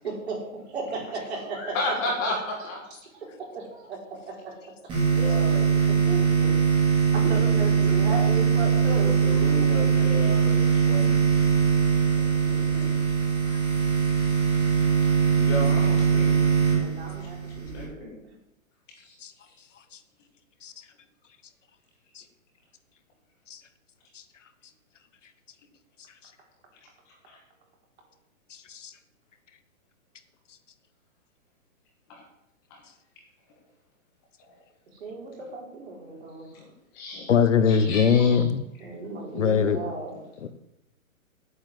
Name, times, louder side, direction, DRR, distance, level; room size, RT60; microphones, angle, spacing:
voice 1, 0.0-1.9 3.1-4.5 5.4-5.6 6.1-6.9 7.1-9.1 9.6-9.9 12.5-12.9 16.7-18.1 34.9-36.5 38.8-40.1, right 3 dB, 50° right, -1 dB, 4.7 m, -36 dB
voice 2, 1.5-2.8 5.0-5.7 8.6-11.2 13.4-13.5 15.4-16.4 17.7-18.2 19.0-19.1 27.3-27.4 32.7-32.8 36.5-36.6 36.9-37.3 37.7-38.5 38.9-39.0 40.1-40.2, left 2 dB, 20° left, 0 dB, 1.6 m, -33 dB
sound 1, 4.9-17.8, right 6 dB, 10° right, 3.4 m, -22 dB
voice 3, 37.3-38.6 39.3-39.8 40.4-40.5, left 6 dB, 60° left, 11 dB, 1.2 m, -21 dB
9.7 x 8.6 x 7.6 m, 0.84 s
hypercardioid pair, 170°, 42 cm